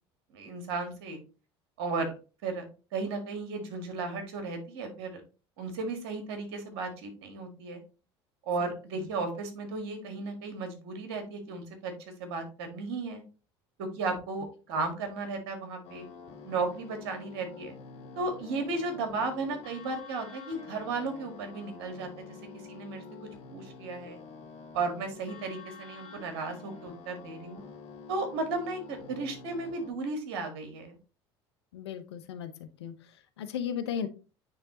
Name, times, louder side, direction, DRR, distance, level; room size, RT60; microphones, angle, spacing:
voice 1, 0.3-1.2 1.8-2.1 2.4-2.6 2.9-5.2 5.6-7.8 8.5-11.9 12.2-13.2 13.8-16.1 16.4-17.7 18.1-22.4 22.7-23.0 23.5-24.2 24.7-27.6 28.1-31.0, right 3 dB, 75° right, 6 dB, 1.7 m, -34 dB
sound 1, 15.8-29.9, left 5 dB, 60° left, 2.3 m, -48 dB
voice 2, 31.7-32.9 33.4-34.1, left 8 dB, 90° left, 9 dB, 0.7 m, -35 dB
9.4 x 3.3 x 2.9 m, 0.34 s
hypercardioid pair, 75°, 13 cm